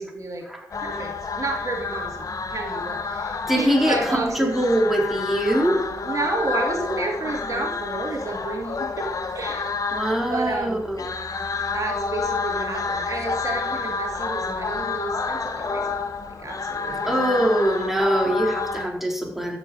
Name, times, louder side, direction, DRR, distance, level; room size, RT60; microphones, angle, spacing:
voice 1, 0.0-0.5 0.8-4.6 6.0-9.1 9.3-9.7 10.3-10.8 11.7-16.0 16.3-17.1, right 3 dB, 55° right, 1 dB, 2.6 m, -30 dB
sound 1, 0.7-18.9, left 4 dB, 60° left, 1.5 m, -29 dB
voice 2, 3.5-5.8 9.9-11.1 17.1-19.6, right 1 dB, 5° right, -1 dB, 4.4 m, -23 dB
13.5 x 8.1 x 5.5 m, 0.81 s
cardioid pair, 45°, 7 cm